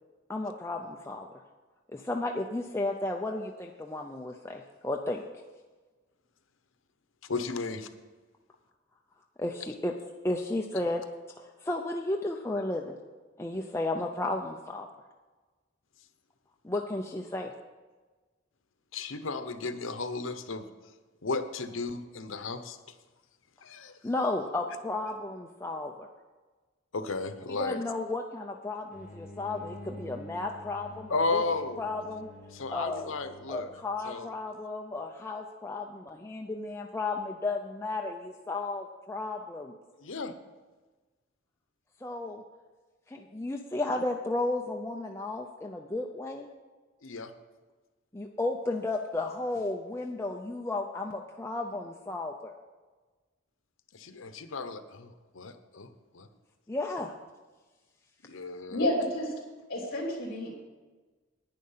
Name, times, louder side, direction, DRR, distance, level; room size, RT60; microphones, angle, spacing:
voice 1, 0.3-1.3 1.9-5.2 9.4-9.9 10.2-11.0 11.4-13.0 13.4-14.9 16.6-17.5 24.0-26.1 27.5-31.4 31.8-32.3 32.7-33.1 33.5-39.7 42.0-42.4 43.1-46.5 48.1-52.6 56.7-57.1, left 2 dB, 15° left, 1 dB, 0.5 m, -33 dB
voice 2, 7.2-7.9 18.9-20.7 21.2-22.9 23.6-23.9 26.9-27.8 31.1-31.9 32.5-33.7 34.0-34.3 40.0-40.3 47.0-47.3 53.9-56.3 58.2-58.8, left 3 dB, 80° left, 10 dB, 0.9 m, -34 dB
sound 1, 28.9-34.3, left 1 dB, 10° right, 1.7 m, -48 dB
voice 3, 58.7-59.3 59.7-60.5, left 1 dB, 45° left, -1 dB, 3.4 m, -30 dB
10.5 x 9.6 x 5.6 m, 1.3 s
head